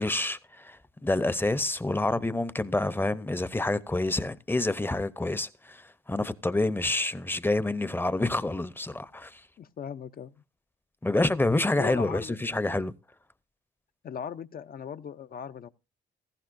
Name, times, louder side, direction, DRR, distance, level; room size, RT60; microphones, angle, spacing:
voice 1, 0.0-9.4 11.0-12.9, left 2 dB, 10° left, 0.7 m, -28 dB
voice 2, 9.6-10.4 11.8-12.4 14.0-15.7, left 8 dB, 50° left, 0.6 m, -38 dB
16.0 x 15.0 x 2.6 m
cardioid pair, 90°, 20 cm